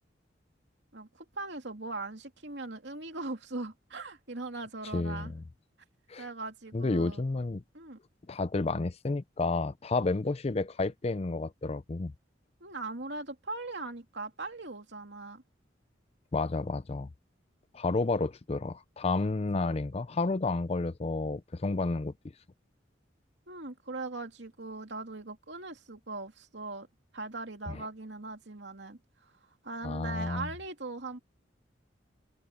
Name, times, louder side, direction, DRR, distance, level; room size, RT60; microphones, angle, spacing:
voice 1, 0.9-5.3 6.2-7.2 7.7-8.0 12.6-15.4 23.5-26.9 27.1-29.0 29.6-31.2, right 3 dB, 65° right, 3.0 m, -40 dB
voice 2, 4.9-5.4 6.1-6.3 6.7-7.6 8.3-12.1 16.3-17.1 17.7-22.1 27.7-27.8 29.8-30.5, left 3 dB, 35° left, 0.5 m, -31 dB
head